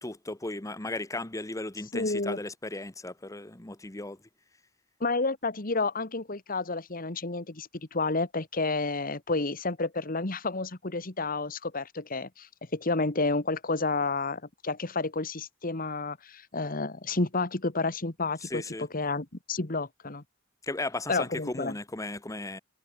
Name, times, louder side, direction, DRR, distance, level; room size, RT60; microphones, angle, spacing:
voice 1, 0.0-4.2 18.4-18.8 20.6-22.6, left 2 dB, 15° left, 1.1 m, -36 dB
voice 2, 1.9-2.4 5.0-20.2 21.1-21.7, left 3 dB, 45° left, 1.8 m, -30 dB
head